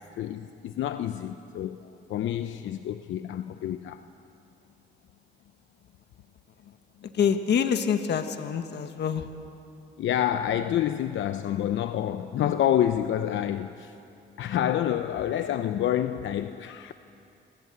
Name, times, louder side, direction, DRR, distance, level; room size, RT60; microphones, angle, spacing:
voice 1, 0.2-1.8 2.1-4.0 7.0-7.1 10.0-14.0 14.4-16.9, left 11 dB, 75° left, 9 dB, 0.9 m, -28 dB
voice 2, 7.0-9.3, left 7 dB, 60° left, 7 dB, 1.5 m, -26 dB
28.0 x 24.5 x 8.1 m, 2.7 s
cardioid pair, 90°, 20 cm